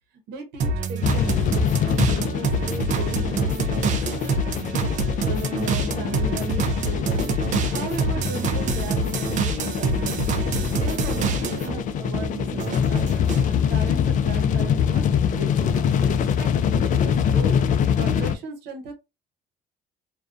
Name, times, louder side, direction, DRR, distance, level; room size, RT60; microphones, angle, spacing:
voice 1, 0.3-1.3 2.1-4.0 5.2-7.3 7.7-10.2 10.7-13.2 13.7-17.6 18.0-18.9, right 3 dB, 85° right, 0.8 m, -36 dB
sound 1, 0.6-11.8 12.1-13.5, right 3 dB, 50° right, 0.4 m, -26 dB
sound 2, 1.0-18.4, left 8 dB, 50° left, 0.4 m, -24 dB
2.4 x 2.2 x 2.4 m
cardioid pair, 110°, 17 cm